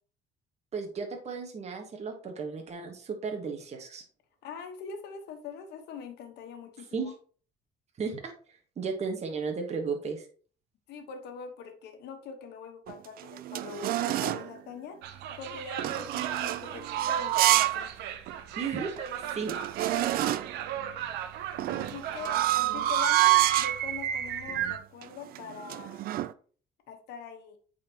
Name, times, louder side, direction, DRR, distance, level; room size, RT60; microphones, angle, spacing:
voice 1, 0.7-4.0 6.9-7.1 8.0-8.3 8.8-10.3 18.6-19.5, right 5 dB, 40° right, 3 dB, 1.4 m, -34 dB
voice 2, 4.4-7.1 10.9-15.0 15.4-17.9 21.7-26.1 26.9-27.6, left 6 dB, 80° left, 5 dB, 1.3 m, -43 dB
sound 1, 12.9-14.5 15.8-17.9 18.3-18.4 19.0-19.1 19.3-20.6 21.6-23.8 24.5-24.7 25.0-26.3, right 15 dB, 60° right, 0.4 m, -28 dB
sound 2, 15.0-24.8, right 10 dB, 85° right, 0.7 m, -35 dB
8.5 x 4.1 x 2.9 m, 0.43 s
cardioid pair, 110°, 17 cm